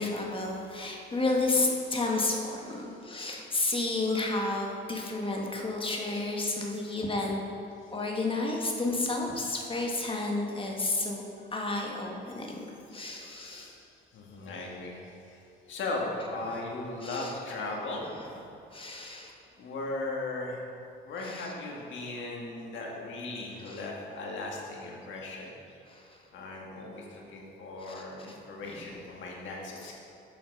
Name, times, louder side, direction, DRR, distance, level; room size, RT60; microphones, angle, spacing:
voice 1, 0.0-7.4 7.9-11.2 11.5-13.7 16.4-16.6 17.0-17.3 18.7-19.3 21.2-21.5 23.7-23.8 25.9-26.1 27.8-28.0 28.6-28.8, left 2 dB, 25° left, 0 dB, 1.4 m, -31 dB
voice 2, 8.0-8.3 12.4-12.5 12.9-13.9 14.1-15.0 15.3-15.4 15.7-18.0 19.6-20.6 21.0-25.5 26.3-29.9, left 2 dB, 75° left, -2 dB, 1.7 m, -38 dB
7.8 x 5.8 x 5.3 m, 2.8 s
cardioid pair, 90°, 20 cm